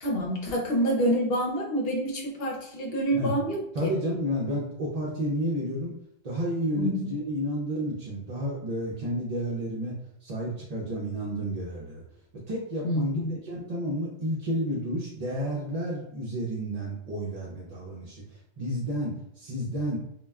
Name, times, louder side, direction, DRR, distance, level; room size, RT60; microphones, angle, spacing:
voice 1, 0.0-3.9 6.8-7.1 12.8-13.4, equal, 60° left, 0 dB, 0.9 m, -27 dB
voice 2, 3.7-6.0 6.2-9.9 10.2-12.0 12.5-20.0, equal, 50° right, -4 dB, 0.5 m, -31 dB
2.3 x 2.1 x 3.4 m, 0.78 s
omnidirectional pair, 1.2 m